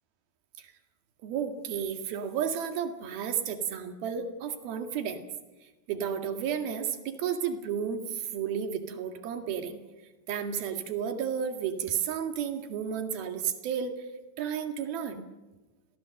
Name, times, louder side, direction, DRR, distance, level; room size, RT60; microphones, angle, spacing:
voice 1, 1.2-5.2 5.9-9.8 10.3-14.1 14.4-15.2, right 8 dB, 80° right, 7 dB, 3.9 m, -32 dB
29.5 x 23.0 x 7.8 m, 1.2 s
omnidirectional pair, 4.3 m